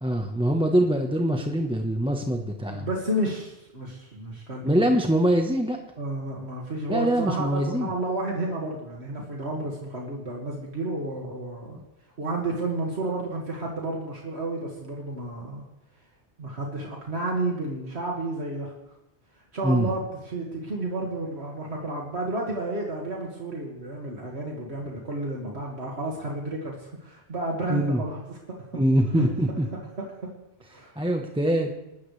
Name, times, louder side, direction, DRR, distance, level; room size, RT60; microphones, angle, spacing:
voice 1, 0.0-2.9 4.6-5.8 6.9-7.9 19.6-19.9 27.7-28.0 28.7-29.7 31.0-31.7, equal, 5° right, 2 dB, 1.1 m, -23 dB
voice 2, 2.7-4.8 6.0-11.8 12.2-15.7 16.4-18.7 19.5-28.6 29.2-29.3 30.0-30.3 30.7-30.9, right 2 dB, 80° right, -2 dB, 2.4 m, -31 dB
28.0 x 13.5 x 3.4 m, 0.91 s
omnidirectional pair, 1.1 m